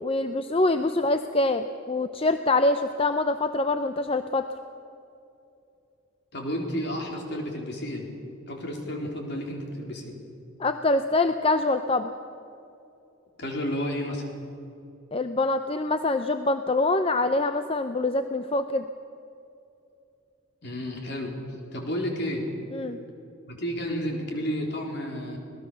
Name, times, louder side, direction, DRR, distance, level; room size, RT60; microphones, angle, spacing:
voice 1, 0.0-4.5 10.6-12.1 15.1-18.8 22.7-23.0, left 2 dB, 30° left, 9 dB, 0.6 m, -25 dB
voice 2, 6.3-8.1 8.5-10.2 13.4-14.3 20.6-21.3 21.7-22.5 23.4-25.4, equal, 55° left, 1 dB, 4.1 m, -31 dB
26.0 x 18.5 x 6.9 m, 2.7 s
head